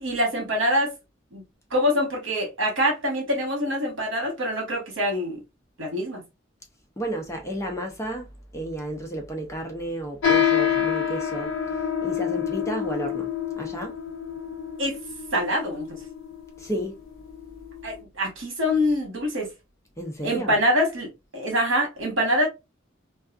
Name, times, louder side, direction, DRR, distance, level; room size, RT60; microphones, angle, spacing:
voice 1, 0.0-0.9 1.3-1.4 1.7-5.4 5.8-6.2 14.8-15.0 15.3-15.9 17.8-19.5 20.2-22.5, equal, 70° right, 1.2 m, -25 dB
voice 2, 7.0-14.0 16.6-17.0 20.0-20.6, right 1 dB, 15° left, 0.5 m, -32 dB
sound 1, 10.2-18.0, left 8 dB, 80° left, 0.5 m, -27 dB
2.4 x 2.3 x 2.3 m
head